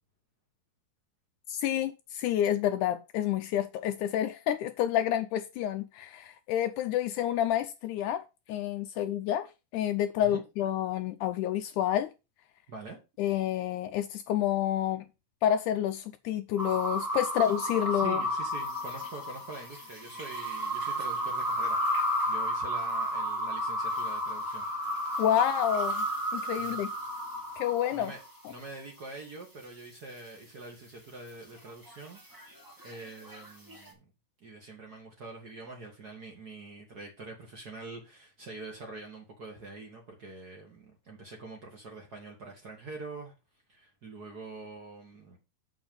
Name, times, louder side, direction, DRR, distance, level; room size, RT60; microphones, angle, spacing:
voice 1, 1.5-12.1 13.2-15.1 15.4-18.2 25.2-26.1 26.3-26.9 27.6-28.1, left 11 dB, 85° left, 1.8 m, -29 dB
voice 2, 12.7-13.0 17.9-21.8 22.3-24.7 26.6-26.8 27.9-28.2 28.5-32.6 32.8-34.1 34.4-43.3 43.7-45.4, right 3 dB, 70° right, 0.9 m, -45 dB
sound 1, 16.6-28.3 31.7-33.9, equal, 15° right, 0.6 m, -32 dB
6.2 x 6.2 x 5.2 m
omnidirectional pair, 4.1 m